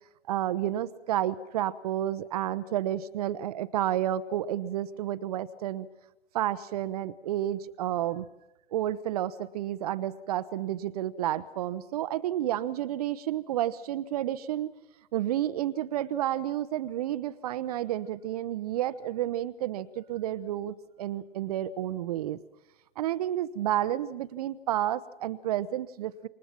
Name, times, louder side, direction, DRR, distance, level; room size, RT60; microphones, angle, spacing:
voice 1, 0.3-5.9 6.3-8.3 8.7-14.7 15.1-22.4 23.0-26.3, right 12 dB, 35° right, 15 dB, 0.9 m, -30 dB
28.0 x 25.0 x 6.0 m, 0.94 s
figure-of-eight pair, 120°, 32 cm